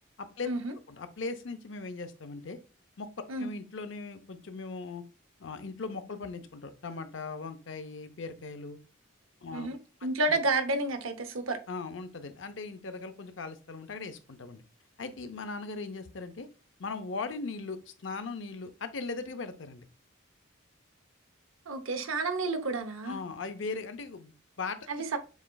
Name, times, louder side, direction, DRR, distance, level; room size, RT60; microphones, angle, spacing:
voice 1, 0.2-0.5 0.9-2.6 3.0-3.1 3.4-5.0 5.4-8.8 9.4-9.7 10.3-10.4 11.7-14.6 15.0-16.5 16.8-19.8 23.0-25.0, left 4 dB, 65° left, 0.6 m, -39 dB
voice 2, 9.5-11.6 21.7-23.2 24.9-25.2, right 2 dB, 85° right, 0.8 m, -30 dB
7.2 x 3.1 x 2.3 m
head